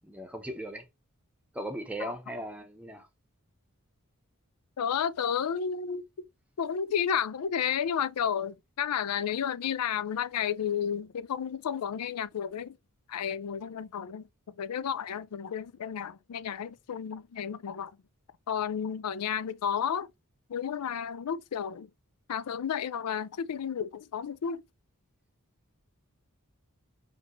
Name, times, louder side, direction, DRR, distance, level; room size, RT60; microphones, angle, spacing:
voice 1, 0.0-0.8 1.5-3.1, right 1 dB, 5° right, 0.8 m, -38 dB
voice 2, 4.8-6.3 6.6-12.8 13.1-14.2 14.6-17.9 18.5-20.1 20.5-21.9 22.3-24.6, left 8 dB, 90° left, 0.4 m, -32 dB
5.2 x 2.8 x 3.1 m
head